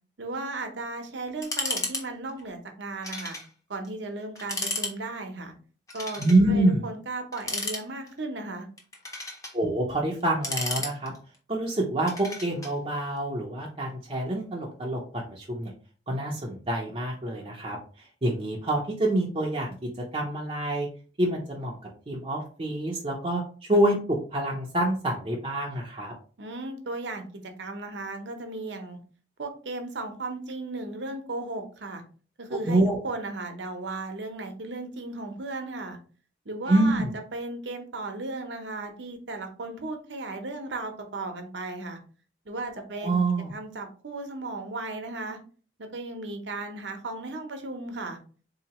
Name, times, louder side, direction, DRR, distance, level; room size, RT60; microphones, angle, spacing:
voice 1, 0.2-3.4 3.7-5.5 5.9-8.7 26.4-29.0 29.4-32.0 32.4-36.0 36.5-42.0 42.5-43.2 43.5-45.4 45.8-48.2, right 2 dB, 75° right, 5 dB, 0.8 m, -36 dB
sound 1, 1.4-2.0 2.3-2.4 3.0-3.5 3.8-3.9 4.4-4.9 5.9-6.4 7.3-8.2 8.8-9.5 10.2-11.3 12.1-12.7, left 2 dB, 20° left, 0.6 m, -33 dB
voice 2, 6.2-6.8 9.5-11.1 11.5-15.7 16.1-20.9 21.2-21.8 22.1-23.4 23.7-26.1 32.5-33.0 36.7-37.1 43.0-43.5, right 1 dB, 30° right, -2 dB, 0.5 m, -26 dB
3.9 x 2.8 x 2.9 m, 0.39 s
head